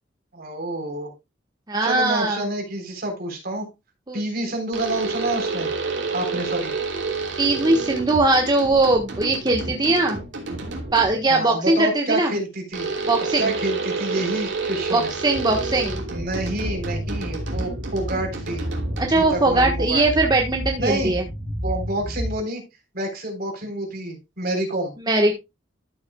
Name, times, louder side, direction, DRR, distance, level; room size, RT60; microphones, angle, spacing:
voice 1, 0.3-1.1 1.8-3.7 4.1-5.7 6.1-6.7 11.3-12.9 13.4-15.1 16.1-18.7 19.1-20.0 20.8-21.1 21.5-22.6 22.9-24.9, right 1 dB, 55° right, 3 dB, 3.8 m, -28 dB
voice 2, 1.7-2.4 4.1-4.2 7.4-10.2 10.9-12.3 13.1-13.5 14.9-16.0 19.0-21.2 25.0-25.3, right 2 dB, 20° right, 2 dB, 1.3 m, -20 dB
sound 1, 4.7-11.3 12.7-19.4, right 3 dB, 70° right, 2.9 m, -29 dB
sound 2, 15.3-22.4, equal, 20° left, 4.5 m, -31 dB
13.0 x 7.8 x 2.3 m, 0.23 s
head